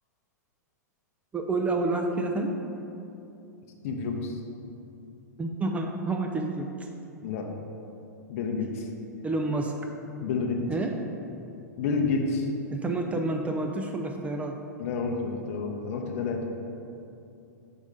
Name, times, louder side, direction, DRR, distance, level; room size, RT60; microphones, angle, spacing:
voice 1, 1.3-2.5 5.4-6.9 9.2-9.9 10.7-11.0 12.7-14.6, right 2 dB, 15° right, 3 dB, 0.4 m, -29 dB
voice 2, 3.8-4.4 7.2-7.5 8.3-8.9 10.2-10.6 11.8-12.5 14.8-16.5, left 4 dB, 50° left, 3 dB, 0.7 m, -29 dB
5.0 x 4.1 x 5.0 m, 2.7 s
figure-of-eight pair, 100°, 10 cm